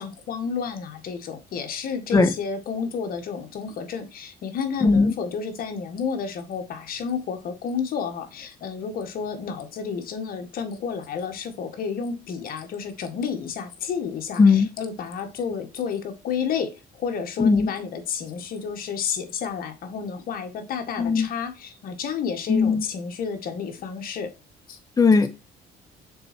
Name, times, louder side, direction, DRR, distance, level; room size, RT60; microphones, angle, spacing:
voice 1, 0.0-24.3 24.7-24.8, left 6 dB, 60° left, 1.7 m, -31 dB
voice 2, 4.8-5.1 14.4-14.7 17.4-17.7 21.0-21.3 22.5-22.8 25.0-25.3, left 4 dB, 20° left, 1.2 m, -17 dB
6.7 x 4.3 x 4.5 m
cardioid pair, 110°, 17 cm